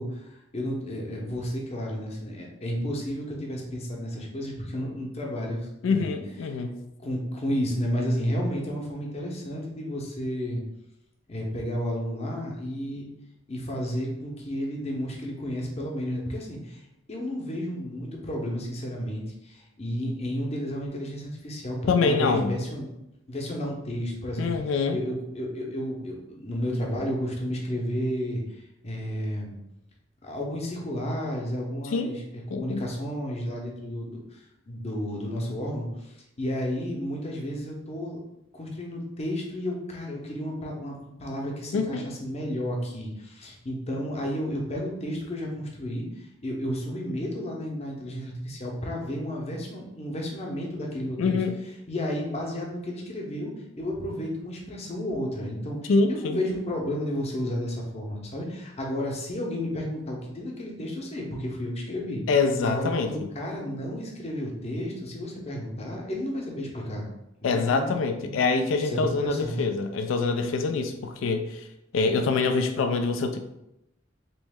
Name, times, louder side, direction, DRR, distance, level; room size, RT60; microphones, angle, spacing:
voice 1, 0.0-6.2 7.0-10.6 11.3-13.1 13.5-22.9 23.3-24.5 24.9-29.5 30.2-38.2 38.5-51.4 51.9-62.2 62.6-67.1 67.4-68.4 68.9-69.6, equal, 35° left, 0 dB, 0.7 m, -32 dB
voice 2, 5.8-6.8 21.9-22.5 24.4-25.0 31.9-32.1 32.5-32.8 41.7-42.0 51.2-51.6 55.9-56.4 62.3-63.1 67.4-71.7 71.9-73.4, left 4 dB, 90° left, 7 dB, 0.3 m, -25 dB
3.1 x 3.0 x 3.5 m, 0.86 s
head